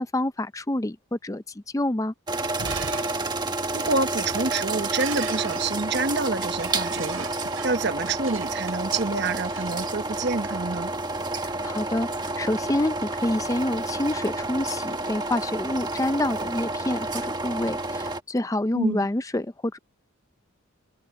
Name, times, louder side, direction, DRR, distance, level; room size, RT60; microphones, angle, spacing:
voice 1, 0.0-2.1 11.6-19.8, left 1 dB, 15° left, 0.5 m, -27 dB
sound 1, 2.3-18.2, right 2 dB, 20° right, 1.4 m, -30 dB
Shatter, 2.6-10.5, right 6 dB, 80° right, 5.8 m, -40 dB
voice 2, 3.7-7.3 7.6-10.9 18.7-19.1, right 3 dB, 55° right, 1.1 m, -27 dB
open air
head